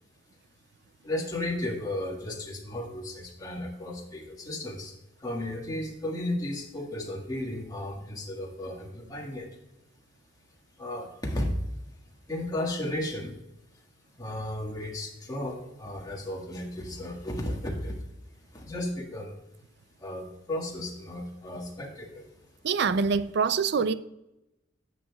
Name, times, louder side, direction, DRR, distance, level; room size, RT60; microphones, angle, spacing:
voice 1, 1.0-9.5 10.8-11.5 12.3-13.4 14.2-18.0 18.5-19.4 20.0-22.3, left 1 dB, 20° left, 1.5 m, -34 dB
voice 2, 22.6-23.9, right 5 dB, 60° right, 0.4 m, -25 dB
10.0 x 8.2 x 2.3 m
head